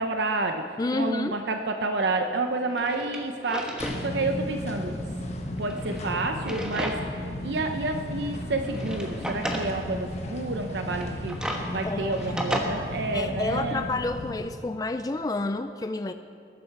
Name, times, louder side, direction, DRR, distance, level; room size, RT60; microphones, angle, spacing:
voice 1, 0.0-5.0 5.6-11.4 11.7-13.9, right 3 dB, 70° right, 5 dB, 0.7 m, -29 dB
voice 2, 0.8-1.4 11.8-12.4 13.1-16.1, left 2 dB, 20° left, 9 dB, 0.3 m, -30 dB
Drawer open or close, 2.0-2.1 2.6-4.0 4.4-4.5 5.5-7.2 7.7-7.8 8.5-9.7 10.9-12.6, right 1 dB, 5° right, 1.2 m, -34 dB
sound 1, 3.8-14.4, left 1 dB, 35° left, 1.3 m, -35 dB
20.5 x 12.0 x 4.6 m, 2.5 s
head